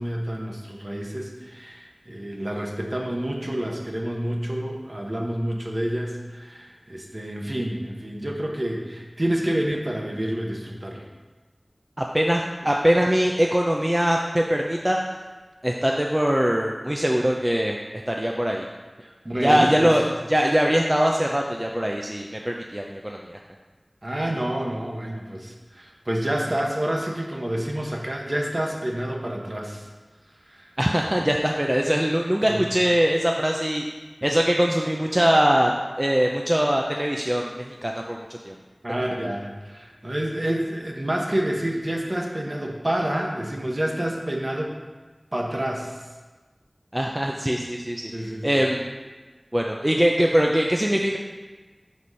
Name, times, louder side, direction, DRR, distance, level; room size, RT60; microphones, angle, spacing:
voice 1, 0.0-11.1 19.0-20.0 24.0-29.9 30.5-30.7 32.5-32.6 38.8-44.7 45.3-46.0 48.1-48.6, right 1 dB, 45° right, 0 dB, 1.0 m, -28 dB
voice 2, 12.0-15.0 15.6-18.7 19.4-23.4 30.8-33.8 34.2-35.7 36.0-38.5 46.9-48.1 48.4-48.9 49.5-51.2, equal, 20° right, 0 dB, 0.4 m, -22 dB
4.7 x 4.3 x 5.4 m, 1.3 s
wide cardioid pair, 45°, 0 cm